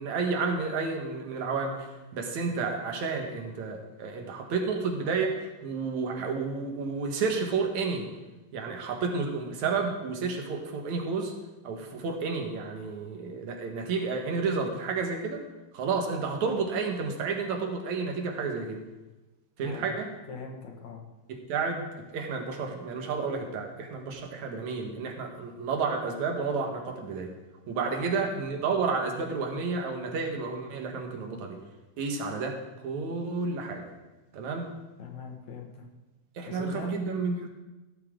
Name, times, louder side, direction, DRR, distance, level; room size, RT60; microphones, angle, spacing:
voice 1, 0.0-8.1 8.5-11.3 11.6-15.4 15.7-18.8 19.6-20.1 21.3-27.3 27.7-31.6 32.0-32.6 32.8-33.8 34.3-34.7 36.4-37.5, right 4 dB, 75° right, 3 dB, 2.9 m, -31 dB
voice 2, 19.6-19.9 20.3-21.0 27.9-28.0 35.0-35.8 36.5-36.9, left 5 dB, 75° left, 1 dB, 3.2 m, -41 dB
16.5 x 13.0 x 3.8 m, 1.1 s
omnidirectional pair, 3.3 m